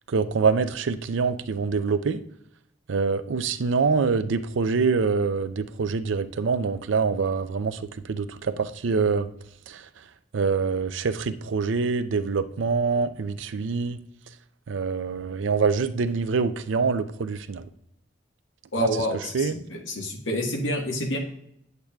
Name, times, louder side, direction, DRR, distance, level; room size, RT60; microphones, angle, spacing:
voice 1, 0.1-2.2 2.9-7.8 8.1-9.3 9.7-9.9 10.3-14.0 14.7-17.7 18.8-18.9 19.3-19.6, right 5 dB, 85° right, 12 dB, 0.5 m, -25 dB
voice 2, 18.7-21.2, left 1 dB, 85° left, 1 dB, 1.5 m, -28 dB
8.7 x 8.1 x 2.3 m, 0.74 s
head